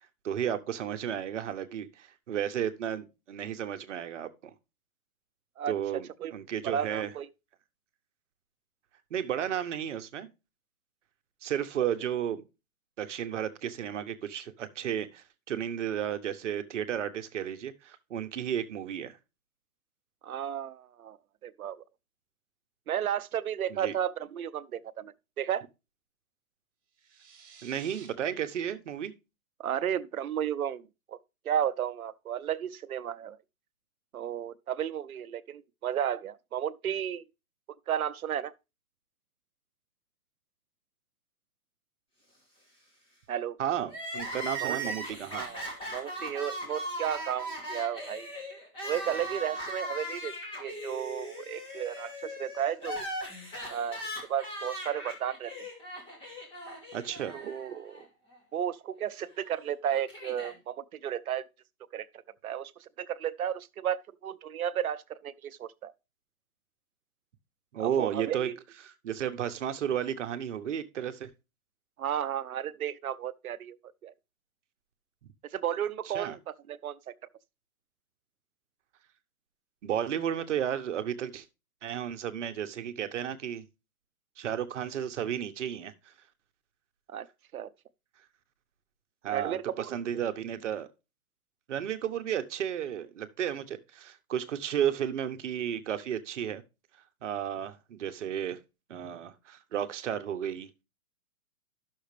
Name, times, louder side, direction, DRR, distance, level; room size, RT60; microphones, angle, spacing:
voice 1, 0.2-4.5 5.7-7.1 9.1-10.3 11.4-12.4 13.0-19.2 23.7-23.9 27.6-29.1 43.6-45.5 56.9-57.4 67.7-68.5 68.8-71.3 76.1-76.3 79.8-81.4 81.8-83.6 84.4-86.1 89.2-90.9 91.7-96.6 97.2-98.6 98.9-100.7, right 9 dB, 55° right, 1.2 m, -33 dB
voice 2, 6.6-7.3 20.2-21.2 21.4-21.8 22.9-25.6 29.6-31.2 31.4-33.4 34.1-37.3 37.9-38.5 43.3-43.6 44.6-44.9 45.3-48.3 48.8-50.3 50.6-53.1 53.7-54.0 54.3-55.7 57.3-58.1 58.5-61.4 61.9-65.9 67.8-68.5 72.0-73.8 74.0-74.1 75.4-76.4 76.7-77.1 87.1-87.3 87.5-87.7 89.3-90.0, right 9 dB, 80° right, 0.9 m, -33 dB
sound 1, 26.9-28.1, right 6 dB, 20° right, 2.9 m, -53 dB
Crying sobbing, 43.9-58.0 58.3-58.4 59.4-60.5, equal, 10° left, 2.5 m, -39 dB
11.5 x 6.5 x 3.3 m
hypercardioid pair, 155°, 42 cm